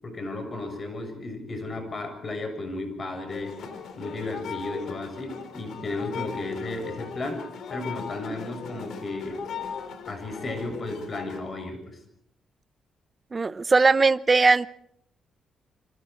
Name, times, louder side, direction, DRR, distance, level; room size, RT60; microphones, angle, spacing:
voice 1, 0.0-3.6 3.9-9.4 10.1-12.0, left 2 dB, 40° left, 6.9 m, -34 dB
sound 1, 3.3-11.4, left 7 dB, 75° left, 4.1 m, -39 dB
voice 2, 13.3-14.7, right 4 dB, 30° right, 0.8 m, -19 dB
27.5 x 26.5 x 4.6 m
cardioid pair, 100°, 0 cm